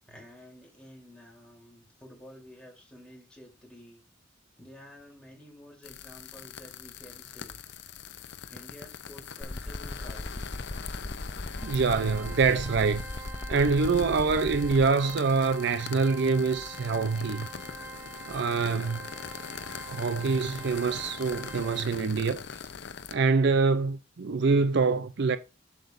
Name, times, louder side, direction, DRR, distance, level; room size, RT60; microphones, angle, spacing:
voice 1, 0.1-4.0 4.6-7.6 8.5-10.6 18.5-19.0, left 1 dB, 5° left, 3.2 m, -51 dB
sound 1, 5.8-23.1, left 6 dB, 65° left, 0.7 m, -43 dB
sound 2, 9.4-14.8, left 2 dB, 25° left, 0.5 m, -37 dB
Organ, 11.6-22.3, right 2 dB, 10° right, 1.1 m, -45 dB
voice 2, 11.6-13.0 13.5-17.5 18.3-19.0 19.9-22.4 23.1-25.4, right 4 dB, 60° right, 0.5 m, -25 dB
7.6 x 7.4 x 2.5 m
head